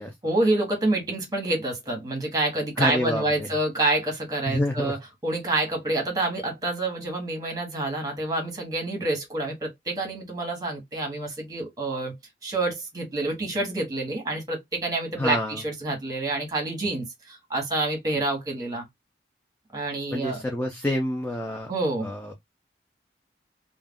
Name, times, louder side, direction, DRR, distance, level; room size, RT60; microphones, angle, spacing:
voice 1, 0.2-5.0 5.2-12.1 12.4-18.9 19.7-20.4 21.7-22.1, right 2 dB, 20° right, 1.0 m, -27 dB
voice 2, 2.8-3.5 4.5-5.0 15.2-15.6 20.1-21.7 22.0-22.3, left 1 dB, 10° left, 0.4 m, -28 dB
2.3 x 2.1 x 3.5 m
head